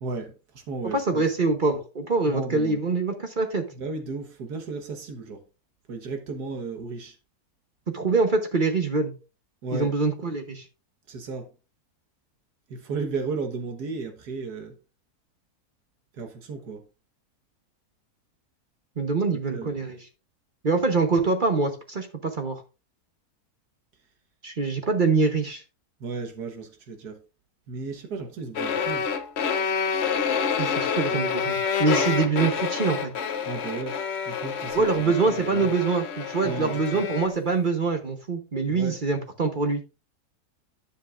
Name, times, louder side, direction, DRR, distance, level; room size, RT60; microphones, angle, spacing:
voice 1, 0.0-1.2 2.3-2.8 3.7-5.4 5.9-7.2 9.6-10.0 11.1-11.5 12.7-14.8 16.1-16.8 19.5-19.7 26.0-27.2 27.7-29.1 31.1-31.2 31.9-32.0 33.5-34.0 34.3-35.7 36.4-37.1 38.7-39.0, right 4 dB, 80° right, 1.7 m, -34 dB
voice 2, 0.8-3.7 7.9-9.1 9.7-10.6 19.0-20.0 20.6-22.6 24.4-25.6 30.6-33.1 34.7-39.8, right 4 dB, 40° right, 0.9 m, -24 dB
sound 1, 28.5-37.4, left 6 dB, 55° left, 0.8 m, -28 dB
10.5 x 7.2 x 2.4 m
omnidirectional pair, 1.7 m